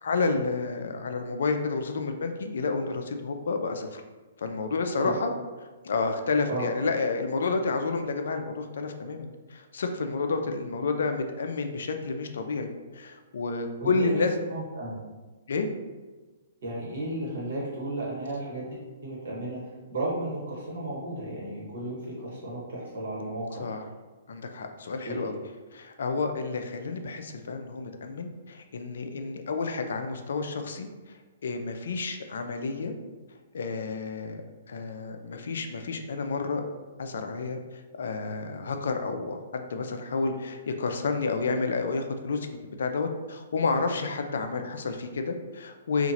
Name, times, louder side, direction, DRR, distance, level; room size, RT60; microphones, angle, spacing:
voice 1, 0.0-4.0 4.4-5.3 5.8-12.7 12.9-14.3 15.5-15.7 23.6-23.9 24.3-25.4 25.7-31.2 31.4-32.9 33.5-34.4 34.7-36.6 37.0-46.1, left 4 dB, 70° left, 6 dB, 0.3 m, -30 dB
voice 2, 13.8-14.2 14.5-15.0 16.6-19.6 19.9-23.6 25.0-25.2, right 1 dB, 70° right, -5 dB, 1.2 m, -34 dB
2.8 x 2.4 x 2.6 m, 1.3 s
hypercardioid pair, 125°, 0 cm